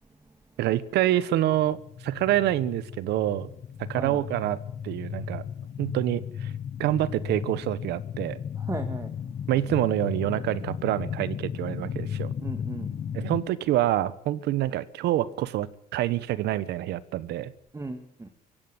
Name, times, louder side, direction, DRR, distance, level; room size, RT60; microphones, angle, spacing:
voice 1, 0.6-1.8 2.0-3.5 3.9-4.6 4.8-5.4 5.8-6.5 6.8-8.4 9.5-12.3 13.1-15.7 15.9-17.5, right 13 dB, 80° right, 1.3 m, -26 dB
sound 1, 1.5-13.4, left 8 dB, 45° left, 1.1 m, -35 dB
voice 2, 8.6-9.1 12.4-13.0 17.7-18.3, right 2 dB, 15° right, 2.0 m, -36 dB
24.0 x 16.5 x 8.1 m
cardioid pair, 110°, 17 cm